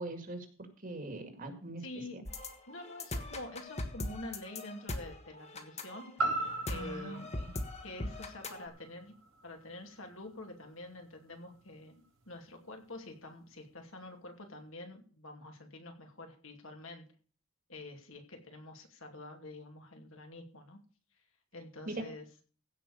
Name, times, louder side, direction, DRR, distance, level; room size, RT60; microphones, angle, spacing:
voice 1, 0.0-1.8 2.1-2.2 6.7-7.6 21.9-22.1, right 2 dB, 40° right, 6 dB, 2.1 m, -42 dB
voice 2, 1.8-2.3 2.7-6.4 6.7-7.3 7.8-9.1 9.4-17.0 17.7-20.8 21.5-22.2, left 2 dB, 65° left, 3 dB, 2.6 m, -47 dB
sound 1, 2.3-8.6, left 2 dB, 30° left, 1.4 m, -40 dB
sound 2, 6.2-10.3 10.7-10.8, right 2 dB, 80° right, 4.6 m, -38 dB
16.0 x 5.3 x 6.7 m, 0.40 s
head